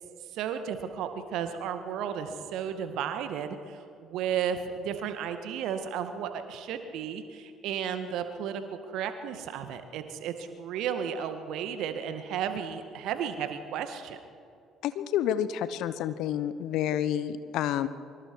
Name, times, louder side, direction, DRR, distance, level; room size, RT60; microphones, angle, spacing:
voice 1, 0.3-8.6 8.9-14.2, right 8 dB, 65° right, 8 dB, 1.8 m, -33 dB
voice 2, 14.8-17.9, left 10 dB, 65° left, 14 dB, 1.0 m, -29 dB
25.0 x 24.5 x 4.8 m, 2.4 s
figure-of-eight pair, 50°, 0 cm